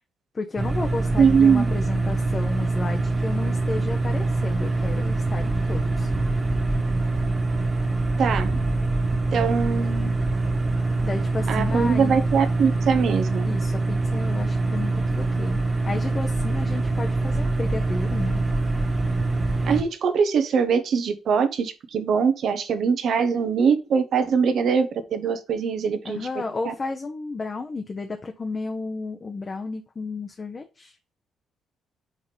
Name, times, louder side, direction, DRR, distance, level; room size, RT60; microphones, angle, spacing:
voice 1, 0.3-6.1 11.0-12.1 13.4-15.6 15.8-18.4 26.0-31.0, left 3 dB, 30° left, 4 dB, 0.8 m, -32 dB
sound 1, 0.6-19.8, right 2 dB, 20° right, 1.6 m, -24 dB
voice 2, 1.2-1.7 8.2-8.6 9.3-10.1 11.5-13.5 19.7-26.3 26.6-26.7, right 6 dB, 65° right, 9 dB, 1.0 m, -22 dB
5.0 x 4.1 x 5.0 m, 0.30 s
cardioid pair, 90°, 0 cm